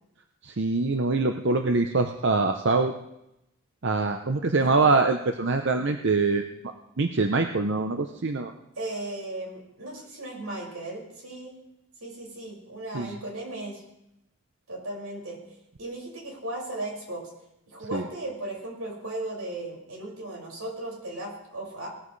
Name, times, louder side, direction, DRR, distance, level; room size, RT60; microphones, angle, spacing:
voice 1, 0.4-2.9 3.8-6.5 7.0-8.5 12.9-13.2 17.9-18.0, right 3 dB, 55° right, 5 dB, 0.7 m, -24 dB
voice 2, 8.8-11.5 12.0-13.8 14.7-15.4 15.8-17.3 17.7-21.9, right 1 dB, 85° right, -2 dB, 5.7 m, -36 dB
19.0 x 14.5 x 3.3 m, 0.86 s
head